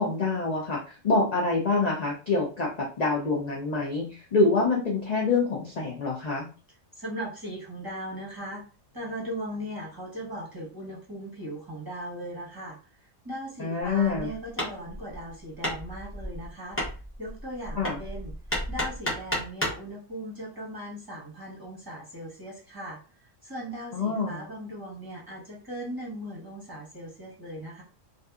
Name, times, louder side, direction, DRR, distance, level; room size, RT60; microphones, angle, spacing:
voice 1, 0.0-6.5 13.6-14.3 17.8-18.0 23.9-24.4, left 3 dB, 50° left, -2 dB, 0.5 m, -26 dB
voice 2, 6.9-8.6 8.9-12.8 13.2-16.8 17.2-18.3 18.7-23.0 23.4-27.8, equal, 20° right, -6 dB, 1.0 m, -38 dB
Hammer, 13.9-19.9, equal, 15° left, 0.7 m, -33 dB
2.6 x 2.5 x 2.3 m, 0.36 s
omnidirectional pair, 1.3 m